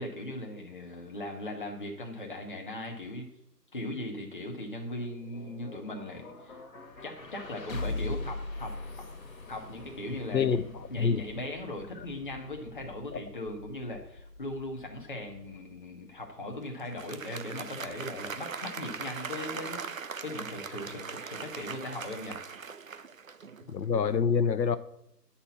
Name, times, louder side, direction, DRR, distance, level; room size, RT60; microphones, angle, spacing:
voice 1, 0.0-3.3 3.7-6.6 7.0-8.7 9.5-10.5 10.9-22.4, left 1 dB, 30° left, 1.1 m, -39 dB
sound 1, 5.0-16.8, left 2 dB, 55° left, 1.6 m, -42 dB
voice 2, 10.3-10.6 11.0-11.2 13.1-13.2 23.7-24.8, left 6 dB, 85° left, 0.9 m, -26 dB
Applause, 16.8-23.8, right 5 dB, 55° right, 0.5 m, -40 dB
9.8 x 4.3 x 5.8 m
hypercardioid pair, 170°, 50 cm